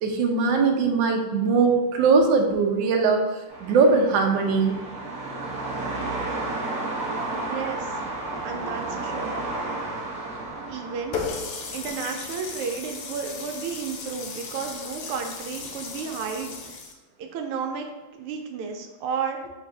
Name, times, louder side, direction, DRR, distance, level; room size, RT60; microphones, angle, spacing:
voice 1, 0.0-3.2 3.6-4.8, right 4 dB, 70° right, 2 dB, 1.2 m, -20 dB
sound 1, 3.5-16.7, right 2 dB, 10° right, 0.4 m, -34 dB
voice 2, 7.3-8.0 8.4-9.4 10.7-11.2 11.7-16.9 17.2-19.5, right 6 dB, 90° right, 4 dB, 1.6 m, -33 dB
Water tap faucet, 11.1-16.9, left 5 dB, 70° left, 1.2 m, -36 dB
4.4 x 2.4 x 4.7 m, 1.2 s
omnidirectional pair, 2.4 m